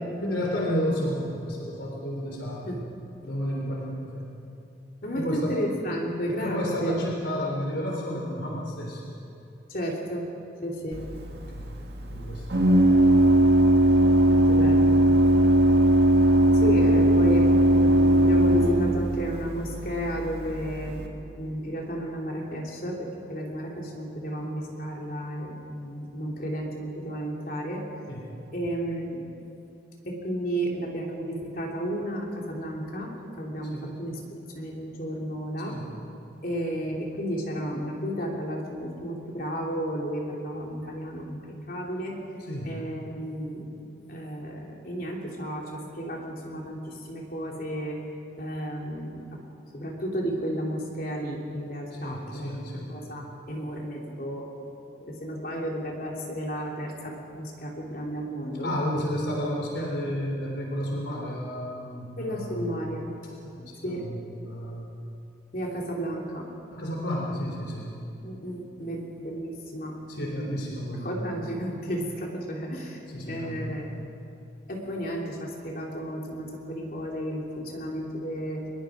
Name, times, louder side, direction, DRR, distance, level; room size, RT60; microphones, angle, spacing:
voice 1, 0.2-2.7 3.2-4.3 5.1-5.6 6.4-9.2 11.5-11.7 12.1-12.6 28.1-28.3 33.7-34.0 35.6-35.9 42.4-42.8 51.9-53.0 58.6-62.7 63.4-64.9 66.7-68.3 70.1-71.2 73.1-73.9, equal, 80° left, -2 dB, 3.6 m, -32 dB
voice 2, 5.0-7.0 9.7-10.4 10.6-11.2 14.2-15.1 16.5-21.1 21.3-27.8 28.5-29.2 30.0-34.2 34.5-35.8 36.4-42.2 42.6-43.7 44.1-48.0 48.4-49.4 49.7-52.5 52.9-54.5 55.0-59.0 62.2-63.0 63.8-64.1 65.5-66.5 68.2-70.6 71.0-73.0 73.3-73.8 74.7-78.7, equal, 50° left, -1 dB, 3.3 m, -33 dB
Organ, 10.9-21.1, right 1 dB, 60° right, 1.9 m, -20 dB
24.5 x 21.0 x 5.1 m, 2.7 s
head